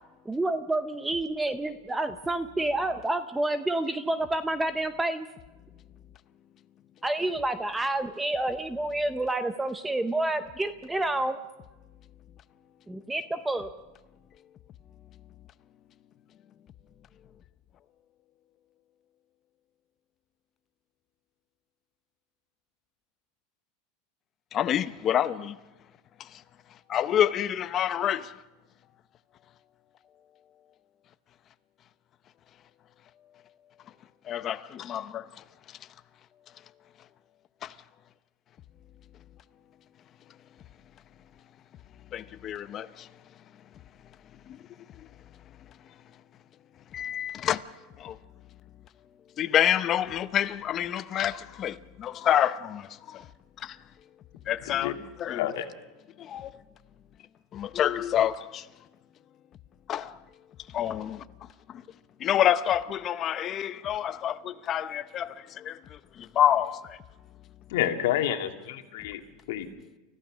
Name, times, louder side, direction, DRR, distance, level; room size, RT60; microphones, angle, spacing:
voice 1, 0.3-5.3 7.0-11.4 12.9-13.7, right 2 dB, 5° right, 0.6 m, -29 dB
voice 2, 24.5-25.6 26.9-28.3 34.3-35.2 42.1-43.1 46.9-47.6 48.0-48.2 49.4-53.2 53.6-53.8 54.5-54.9 55.2-55.5 56.2-56.5 57.5-58.6 59.9-60.1 60.7-61.2 62.2-65.8 66.3-67.0, left 10 dB, 30° left, 0.7 m, -27 dB
voice 3, 55.3-55.7 67.7-69.2 69.5-69.7, left 11 dB, 70° left, 2.1 m, -28 dB
29.0 x 15.0 x 6.2 m
supercardioid pair, 155°, 0 cm